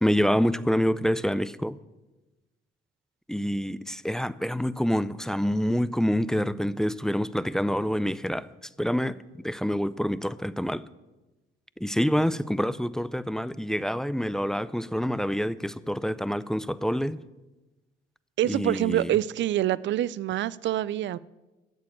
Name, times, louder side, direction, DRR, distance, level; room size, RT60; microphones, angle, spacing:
voice 1, 0.0-1.8 3.3-8.5 8.8-9.2 9.4-10.8 11.8-17.2 18.4-19.1, equal, 5° left, 0.5 m, -27 dB
voice 2, 18.4-21.2, right 13 dB, 65° right, 0.5 m, -26 dB
13.0 x 7.5 x 8.5 m
cardioid pair, 90°, 20 cm